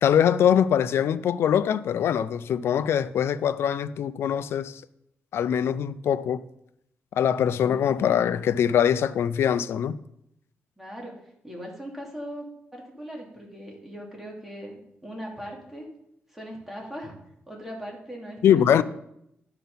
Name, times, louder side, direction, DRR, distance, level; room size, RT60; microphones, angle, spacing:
voice 1, 0.0-4.8 5.3-6.4 7.2-10.0 18.4-18.8, left 9 dB, 85° left, 0.4 m, -22 dB
voice 2, 10.8-11.1 11.4-12.5 12.7-15.9 16.3-17.1 17.5-18.8, equal, 5° right, 2.6 m, -39 dB
11.5 x 6.0 x 5.5 m
wide cardioid pair, 115°, 4 cm